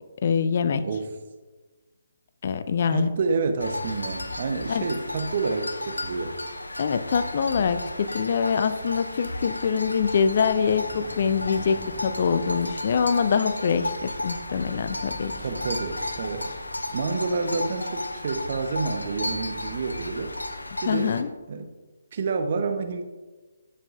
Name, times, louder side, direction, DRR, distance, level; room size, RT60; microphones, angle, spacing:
voice 1, 0.2-0.9 2.4-3.2 4.7-4.9 6.8-15.3 20.7-21.3, left 6 dB, 45° left, 11 dB, 0.5 m, -24 dB
voice 2, 2.9-6.4 15.4-16.5 16.9-20.3 20.8-21.2 21.5-21.7 22.1-23.0, right 4 dB, 45° right, 7 dB, 0.9 m, -28 dB
sound 1, 3.6-21.2, left 1 dB, 85° left, 0.8 m, -34 dB
sound 2, 9.8-21.0, right 1 dB, 20° right, 0.9 m, -46 dB
11.0 x 7.5 x 2.5 m, 1.3 s
figure-of-eight pair, 145°, 0 cm